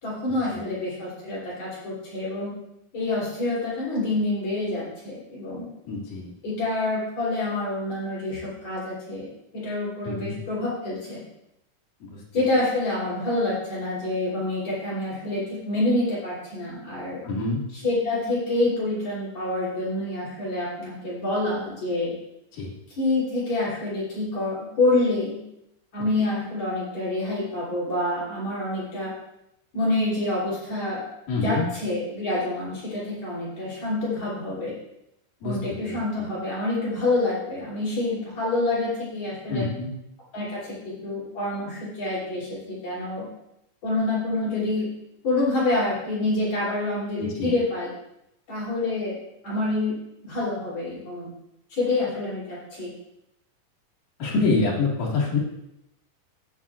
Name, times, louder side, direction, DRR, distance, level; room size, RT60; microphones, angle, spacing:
voice 1, 0.0-2.5 2.9-5.7 6.4-9.3 9.5-11.2 12.3-17.2 17.7-22.1 23.0-25.4 25.9-29.1 29.7-31.0 31.4-34.8 35.4-39.6 40.3-40.7 41.0-43.3 43.8-44.9 45.2-47.9 48.5-49.1 49.4-50.0 50.2-51.3 51.7-52.9, left 2 dB, 55° left, -8 dB, 4.2 m, -27 dB
voice 2, 5.9-6.3 10.0-10.4 12.0-12.1 17.2-17.6 22.5-22.7 31.3-31.7 35.4-35.6 35.8-36.0 39.5-39.9 47.2-47.5 54.2-55.4, left 3 dB, 80° left, -4 dB, 3.5 m, -26 dB
13.0 x 9.6 x 2.4 m, 0.82 s
omnidirectional pair, 3.8 m